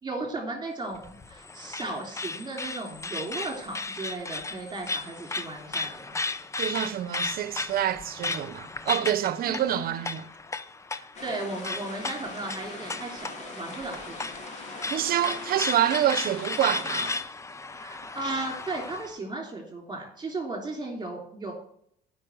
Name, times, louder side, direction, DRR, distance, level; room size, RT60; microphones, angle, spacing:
voice 1, 0.0-6.2 9.5-10.0 10.9-14.3 17.7-21.5, right 2 dB, 25° right, 3.3 m, -36 dB
sound 1, 0.9-19.1, left 3 dB, 15° left, 0.6 m, -35 dB
voice 2, 6.6-10.3 14.9-17.1, right 11 dB, 60° right, 0.9 m, -27 dB
sound 2, 11.1-17.2, left 3 dB, 45° left, 2.4 m, -42 dB
8.7 x 5.6 x 7.9 m
cardioid pair, 110°, 17 cm